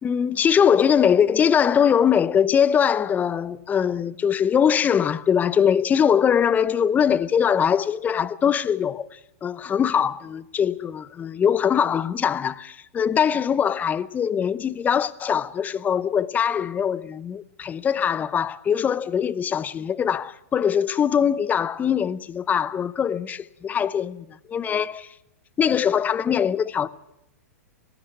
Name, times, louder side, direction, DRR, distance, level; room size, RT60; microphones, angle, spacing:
voice 1, 0.0-25.1 25.6-26.9, left 8 dB, 20° left, 0.8 m, -22 dB
19.0 x 17.5 x 8.2 m
hypercardioid pair, 115°, 8 cm